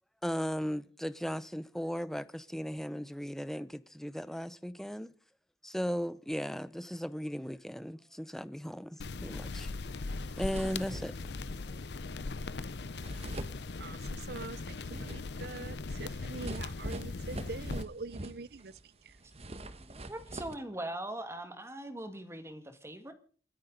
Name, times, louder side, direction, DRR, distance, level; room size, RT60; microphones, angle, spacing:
voice 1, 0.2-5.1 5.6-9.7 10.4-11.1, equal, ahead, 0.6 m, -37 dB
sound 1, 9.0-17.8, left 3 dB, 70° left, 0.7 m, -39 dB
sound 2, 9.9-10.0 10.2-11.4 12.6-12.7 13.0-14.2 14.6-18.8 19.1-20.6, right 1 dB, 35° right, 1.2 m, -44 dB
voice 2, 13.8-18.8 19.0-19.2, right 3 dB, 60° right, 0.6 m, -44 dB
voice 3, 19.8-23.1, right 1 dB, 15° right, 1.9 m, -41 dB
29.0 x 10.0 x 3.9 m
head